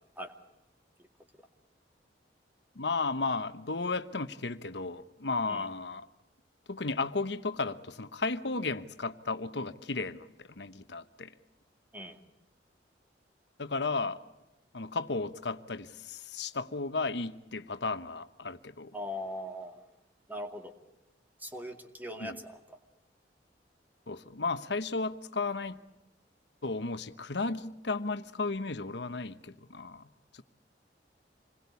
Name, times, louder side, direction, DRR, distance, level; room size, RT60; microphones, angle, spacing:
voice 1, 2.7-6.1 6.7-11.3 13.6-14.2 14.7-18.9 22.2-22.4 24.1-25.8 26.6-30.1 30.3-30.4, left 3 dB, 75° left, 1.1 m, -34 dB
voice 2, 18.9-19.8 20.3-20.7 21.4-22.8, equal, 10° right, 2.3 m, -40 dB
27.5 x 21.0 x 8.4 m
head